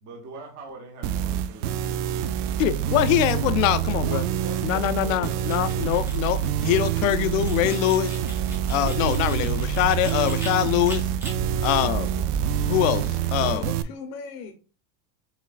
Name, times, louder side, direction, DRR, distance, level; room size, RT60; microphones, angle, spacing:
voice 1, 0.0-2.6 3.8-5.8 11.9-12.3, right 2 dB, 35° right, 0.9 m, -42 dB
sound 1, 1.0-13.8, right 10 dB, 75° right, 0.6 m, -26 dB
voice 2, 2.6-4.2 4.6-8.1 8.7-11.1 11.6-12.1 12.6-13.6, left 13 dB, 60° left, 0.5 m, -23 dB
sound 2, 5.0-10.5 10.9-11.3, equal, 5° right, 0.5 m, -41 dB
sound 3, 11.3-12.7, right 6 dB, 90° right, 2.6 m, -35 dB
voice 3, 13.2-14.5, left 5 dB, 80° left, 1.0 m, -38 dB
6.1 x 3.2 x 2.4 m
supercardioid pair, 175°, 46 cm